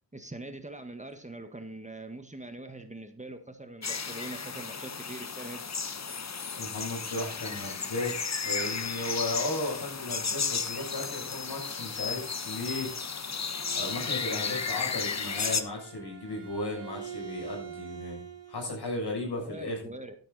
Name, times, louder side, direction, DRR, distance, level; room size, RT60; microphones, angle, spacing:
voice 1, 0.1-5.7 19.4-20.1, right 2 dB, 15° right, 7 dB, 1.6 m, -43 dB
sound 1, 3.8-15.6, left 5 dB, 40° left, 1.1 m, -34 dB
voice 2, 6.6-12.9 13.8-18.2 18.5-19.8, left 2 dB, 65° left, 0 dB, 7.1 m, -35 dB
Bowed string instrument, 13.2-18.7, right 8 dB, 90° right, 2.1 m, -45 dB
13.0 x 9.0 x 4.1 m, 0.39 s
cardioid pair, 60°, 42 cm